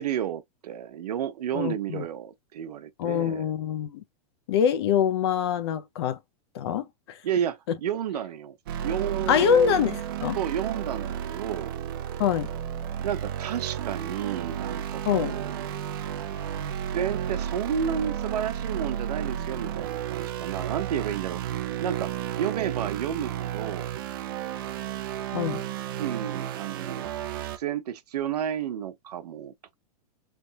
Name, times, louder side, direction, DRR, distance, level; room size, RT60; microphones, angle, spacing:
voice 1, 0.0-3.5 7.2-8.6 8.8-9.8 10.3-11.7 13.0-15.8 16.9-21.4 21.8-22.1 22.4-23.9 26.0-27.2 27.6-29.7, right 9 dB, 90° right, 0.9 m, -31 dB
voice 2, 1.5-2.0 3.0-4.0 4.5-6.2 6.5-7.2 9.3-10.4 12.2-12.5 15.1-15.4 25.3-25.6, left 8 dB, 40° left, 0.6 m, -24 dB
sound 1, 8.7-27.6, right 10 dB, 35° right, 0.5 m, -32 dB
3.4 x 2.1 x 4.0 m
supercardioid pair, 180°, 20 cm